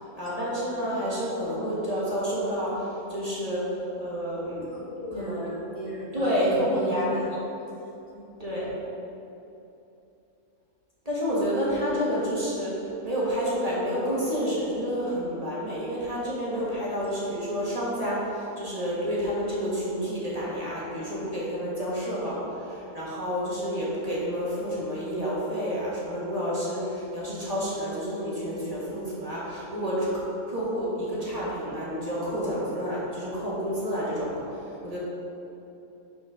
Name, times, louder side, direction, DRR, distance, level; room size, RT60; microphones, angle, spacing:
voice 1, 0.2-4.7 5.1-5.5 6.1-7.2 8.4-8.7 11.0-30.1 30.5-35.0, equal, 25° right, -8 dB, 1.7 m, -29 dB
voice 2, 4.7-7.3 8.1-8.3 8.7-8.8, equal, 25° left, -5 dB, 1.0 m, -36 dB
5.8 x 4.5 x 6.0 m, 2.9 s
omnidirectional pair, 1.5 m